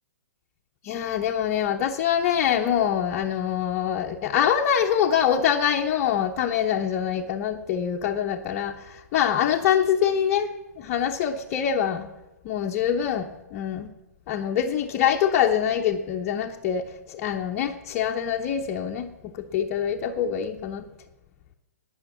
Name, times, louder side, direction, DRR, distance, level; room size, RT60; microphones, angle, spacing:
voice 1, 0.8-10.5 10.8-12.1 12.4-13.9 14.3-19.1 19.3-20.8, left 9 dB, 30° left, 1 dB, 0.8 m, -24 dB
18.5 x 6.4 x 7.4 m, 1.1 s
figure-of-eight pair, 120°, 9 cm